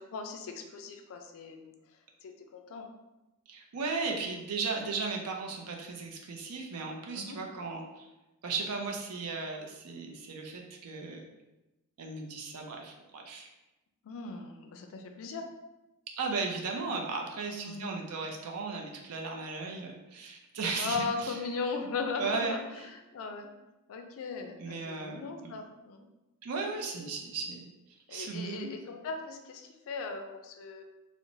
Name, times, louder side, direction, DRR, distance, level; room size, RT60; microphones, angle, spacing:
voice 1, 0.1-1.7 2.2-2.9 7.1-7.4 14.0-15.4 17.6-18.0 20.8-23.5 23.9-26.1 28.1-30.8, left 4 dB, 65° left, 5 dB, 0.3 m, -38 dB
voice 2, 3.5-8.1 8.4-11.2 12.0-13.5 16.2-21.4 22.2-22.5 24.6-25.6 26.4-27.6 28.1-28.7, right 4 dB, 85° right, 1 dB, 0.5 m, -36 dB
2.9 x 2.0 x 2.6 m, 1.0 s
head